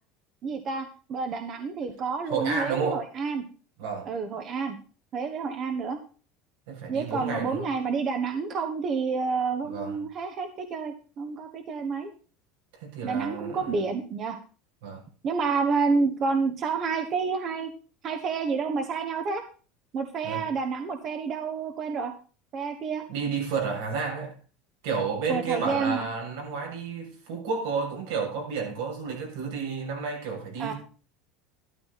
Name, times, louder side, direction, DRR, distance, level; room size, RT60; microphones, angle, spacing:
voice 1, 0.4-3.4 4.1-4.8 5.1-6.0 6.9-12.1 13.0-14.4 15.2-17.7 18.0-19.4 19.9-22.1 22.5-23.0 25.3-26.1 30.6-30.7, right 5 dB, 35° right, 7 dB, 1.2 m, -29 dB
voice 2, 2.3-3.0 3.8-4.1 6.7-7.7 9.7-10.0 12.8-13.7 14.8-15.0 20.2-20.4 23.1-24.3 24.8-30.8, right 5 dB, 80° right, 1 dB, 7.0 m, -31 dB
13.0 x 12.5 x 4.2 m, 0.37 s
cardioid pair, 160°, 0 cm